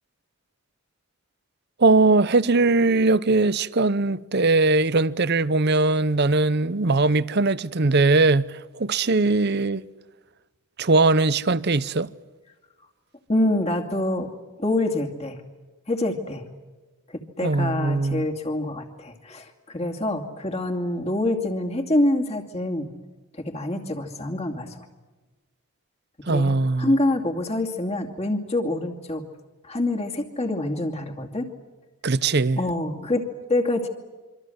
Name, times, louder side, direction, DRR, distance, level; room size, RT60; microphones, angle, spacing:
voice 1, 1.8-9.9 10.8-12.1 17.4-18.3 26.3-26.9 32.0-32.6, right 3 dB, 50° right, 0.8 m, -20 dB
voice 2, 13.3-14.3 14.6-15.4 15.9-16.4 17.1-22.9 23.3-24.9 26.2-29.2 29.6-31.5 32.6-33.9, left 1 dB, 30° left, 2.5 m, -26 dB
26.5 x 25.5 x 7.9 m
head